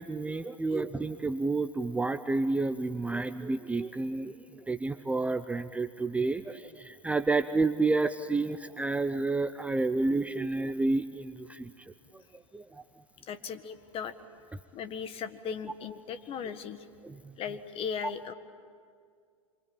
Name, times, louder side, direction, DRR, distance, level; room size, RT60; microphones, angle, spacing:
voice 1, 0.0-12.2 12.5-12.8 17.0-17.3, right 3 dB, 5° right, 10 dB, 0.7 m, -30 dB
voice 2, 13.3-14.2 14.7-16.9 17.4-18.3, left 7 dB, 30° left, 11 dB, 1.6 m, -37 dB
27.0 x 24.5 x 8.9 m, 2.2 s
hypercardioid pair, 110°, 18 cm